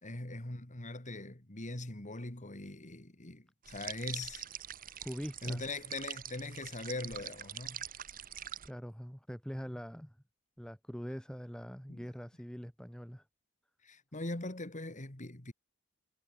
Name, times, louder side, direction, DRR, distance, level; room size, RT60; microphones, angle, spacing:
voice 1, 0.0-4.5 5.4-7.8 11.9-12.1 13.8-15.5, left 2 dB, 35° left, 2.3 m, -41 dB
sound 1, 3.7-8.7, right 10 dB, 40° right, 1.3 m, -44 dB
voice 2, 5.0-5.6 8.6-10.2 10.6-13.2, equal, 5° left, 2.8 m, -43 dB
head